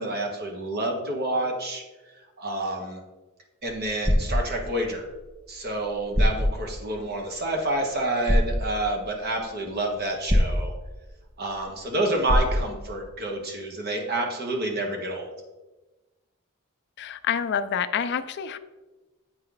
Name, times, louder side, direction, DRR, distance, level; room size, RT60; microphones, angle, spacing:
voice 1, 0.0-1.8 2.2-3.0 3.6-5.1 5.5-10.7 11.4-15.3, right 1 dB, 45° right, 2 dB, 1.2 m, -29 dB
sound 1, 3.7-4.4 5.7-5.8 6.1-6.5 8.3-8.6 10.3-10.7 12.3-12.7, equal, 15° right, 0.6 m, -21 dB
voice 2, 17.0-18.6, left 7 dB, 50° left, 11 dB, 0.4 m, -27 dB
8.2 x 4.3 x 3.9 m, 1.2 s
head